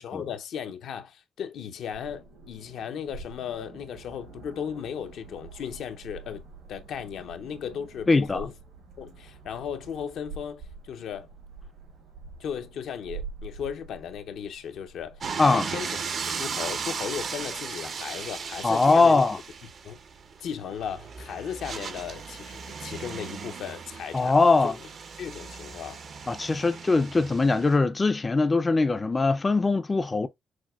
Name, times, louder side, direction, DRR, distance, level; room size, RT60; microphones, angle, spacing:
voice 1, 0.0-6.4 6.7-8.5 9.0-11.3 12.4-15.9 16.3-19.2 19.8-20.0 20.4-24.3 24.6-24.7 25.2-26.0, left 8 dB, 75° left, 0.6 m, -36 dB
sound 1, 1.9-15.3, right 4 dB, 85° right, 2.9 m, -46 dB
voice 2, 8.1-8.4 15.4-15.7 18.6-19.4 24.1-24.8 26.3-30.3, left 3 dB, 25° left, 0.4 m, -21 dB
sound 2, 15.2-27.8, right 5 dB, 55° right, 0.6 m, -37 dB
6.2 x 2.2 x 2.3 m
cardioid pair, 90°, 0 cm